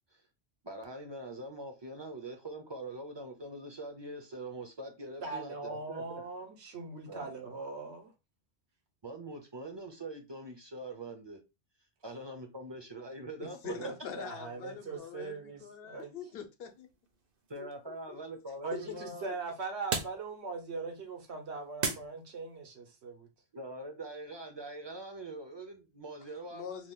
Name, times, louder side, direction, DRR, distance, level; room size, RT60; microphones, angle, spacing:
voice 1, 0.6-6.2 7.1-7.3 9.0-11.4 12.0-13.6 17.5-19.3 23.5-26.7, right 2 dB, 35° right, 0.4 m, -43 dB
voice 2, 5.2-8.1 13.6-16.1 18.6-23.3, right 4 dB, 90° right, 1.2 m, -41 dB
voice 3, 13.4-16.9 17.6-18.2 18.7-18.8 19.3-19.4 26.5-26.9, left 6 dB, 65° left, 0.9 m, -44 dB
sound 1, 16.6-22.7, right 4 dB, 60° right, 0.8 m, -42 dB
2.8 x 2.3 x 3.5 m
omnidirectional pair, 1.1 m